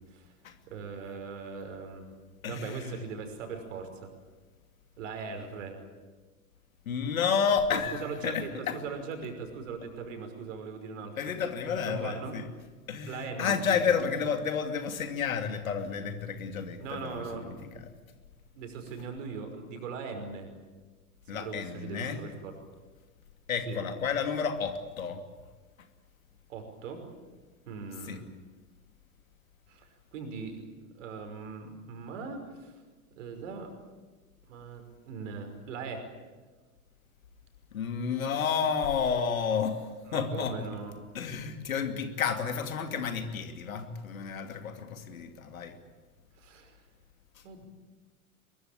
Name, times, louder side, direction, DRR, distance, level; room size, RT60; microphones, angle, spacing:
voice 1, 0.0-0.3 0.7-2.1 2.5-4.1 5.0-5.8 7.7-11.3 11.9-12.4 13.1-14.0 16.8-17.5 18.5-20.5 21.3-22.5 23.7-23.8 26.5-27.1 27.7-28.3 29.7-30.6 30.9-32.8 33.2-33.7 34.5-36.1 40.1-41.0 46.4-46.8 47.4-47.7, right 5 dB, 60° right, 6 dB, 5.6 m, -40 dB
voice 2, 2.4-2.9 6.9-8.8 11.2-12.5 12.9-17.4 21.3-22.2 23.5-25.2 28.1-28.2 37.7-39.8 40.1-40.6 41.1-45.8, left 6 dB, 65° left, 7 dB, 2.8 m, -31 dB
23.0 x 22.5 x 8.6 m, 1.4 s
figure-of-eight pair, 90°, 44 cm